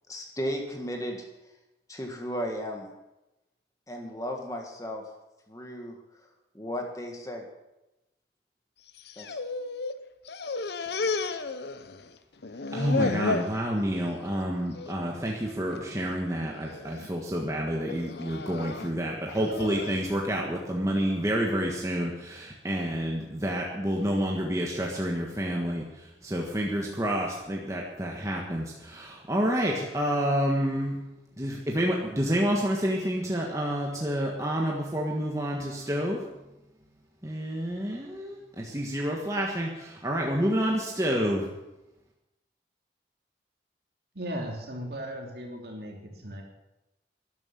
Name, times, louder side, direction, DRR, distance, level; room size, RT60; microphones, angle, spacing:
voice 1, 0.1-1.3 1.9-2.9 3.9-5.0 5.5-6.3 6.5-7.5 9.2-9.4, equal, 20° left, 2 dB, 1.7 m, -35 dB
sound 1, 8.9-10.0 10.3-12.1 12.4-13.6 14.1-14.4 14.8-14.9 15.8-16.2 16.7-17.1 17.9-20.1, left 3 dB, 65° left, 0.8 m, -33 dB
voice 2, 12.7-31.0 31.4-36.2 37.2-41.5, equal, 15° right, -1 dB, 1.5 m, -29 dB
voice 3, 44.1-46.4, equal, 60° right, 0 dB, 3.1 m, -37 dB
12.5 x 11.5 x 7.0 m, 0.95 s
head